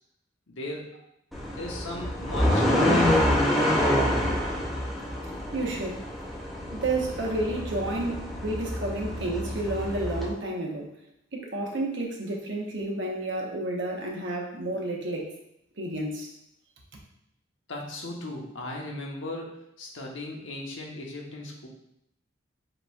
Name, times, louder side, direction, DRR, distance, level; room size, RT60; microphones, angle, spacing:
voice 1, 0.5-1.1 1.5-3.3 3.5-4.0 17.7-21.7, left 1 dB, 85° left, -1 dB, 1.0 m, -37 dB
sound 1, 1.3-10.3, left 1 dB, ahead, 0.6 m, -27 dB
voice 2, 5.5-6.0 6.7-10.9 11.3-15.3 15.8-16.3, right 2 dB, 70° right, 0 dB, 0.9 m, -31 dB
7.5 x 3.0 x 2.3 m, 0.80 s
head